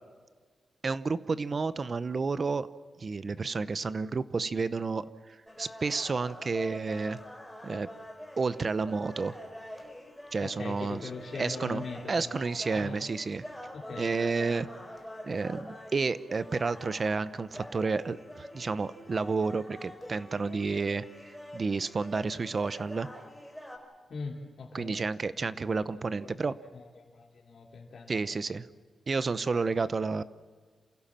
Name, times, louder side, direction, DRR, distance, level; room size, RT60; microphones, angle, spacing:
voice 1, 0.8-2.7 3.0-7.2 7.6-7.9 8.4-9.4 10.3-11.1 11.3-13.4 14.0-14.7 15.2-23.1 24.7-26.5 28.1-28.7 29.1-30.2, right 4 dB, 35° right, 15 dB, 0.8 m, -31 dB
sound 1, 5.5-23.8, equal, ahead, 4.3 m, -46 dB
voice 2, 10.4-13.0 13.7-14.0 24.1-25.0 26.2-26.3 26.7-28.2 29.5-29.6, left 4 dB, 55° left, -2 dB, 2.8 m, -41 dB
28.0 x 16.0 x 7.5 m, 1.5 s
wide cardioid pair, 145°, 0 cm